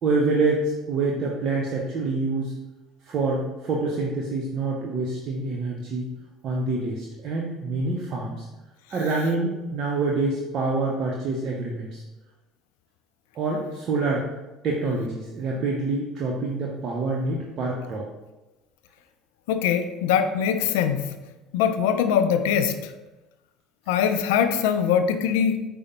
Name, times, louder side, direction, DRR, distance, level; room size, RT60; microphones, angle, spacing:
voice 1, 0.0-2.5 3.1-6.0 6.4-8.4 8.9-12.0 13.4-14.3 14.6-18.0, right 3 dB, 55° right, -2 dB, 0.6 m, -26 dB
voice 2, 19.5-21.1 21.5-22.9 23.9-25.6, left 8 dB, 75° left, 9 dB, 0.3 m, -22 dB
4.9 x 2.1 x 4.2 m, 1.1 s
hypercardioid pair, 65°, 0 cm